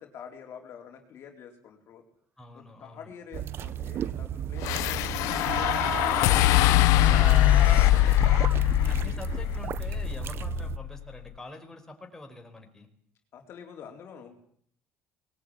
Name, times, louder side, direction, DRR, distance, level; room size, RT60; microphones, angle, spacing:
voice 1, 0.0-2.0 2.5-8.1 8.7-9.2 13.3-14.4, left 7 dB, 50° left, 3 dB, 4.1 m, -47 dB
voice 2, 2.4-3.1 8.5-12.9, left 2 dB, 10° left, 3 dB, 5.1 m, -46 dB
sound 1, 3.1-3.2 3.6-3.8 4.8-4.9 5.3-9.2 9.6-9.7, right 4 dB, 25° right, 2.0 m, -37 dB
sound 2, 3.3-10.8, right 10 dB, 45° right, 1.0 m, -35 dB
sound 3, 4.6-11.0, left 16 dB, 75° left, 1.1 m, -23 dB
21.0 x 18.5 x 9.7 m, 0.62 s
cardioid pair, 115°, 5 cm